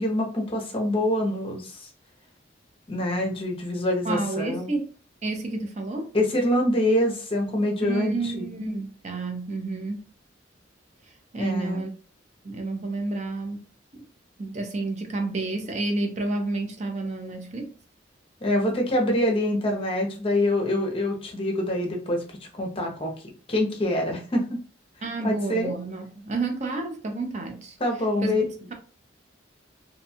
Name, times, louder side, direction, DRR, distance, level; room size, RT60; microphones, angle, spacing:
voice 1, 0.0-1.9 2.9-4.7 6.1-8.5 11.3-11.9 18.4-22.2 22.6-23.1 23.5-24.6 25.2-25.7 27.8-28.4, left 1 dB, 30° left, 0.6 m, -25 dB
voice 2, 4.0-4.9 5.2-6.1 7.8-10.0 11.3-11.9 12.4-13.6 13.9-14.0 14.4-17.7 25.0-27.8 28.2-28.4 28.7-28.8, right 2 dB, 35° right, 0.5 m, -30 dB
2.6 x 2.2 x 2.7 m
head